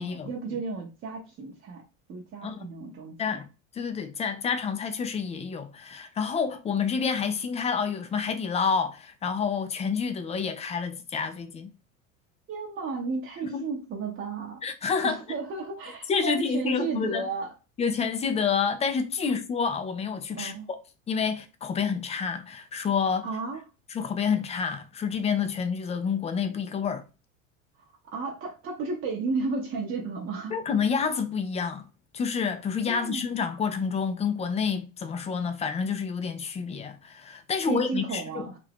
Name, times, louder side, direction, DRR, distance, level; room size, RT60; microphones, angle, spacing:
voice 1, 0.0-1.8 2.1-3.4 12.5-14.6 15.0-17.5 20.3-20.7 23.2-23.6 28.1-30.6 32.9-33.3 37.6-38.6, right 3 dB, 30° right, 0.8 m, -33 dB
voice 2, 3.7-11.7 13.4-13.7 14.6-15.2 16.1-17.2 17.8-20.5 21.1-23.3 23.9-27.1 30.5-31.8 32.1-38.5, left 6 dB, 15° left, 0.4 m, -28 dB
2.6 x 2.5 x 3.4 m
hypercardioid pair, 80°, 40 cm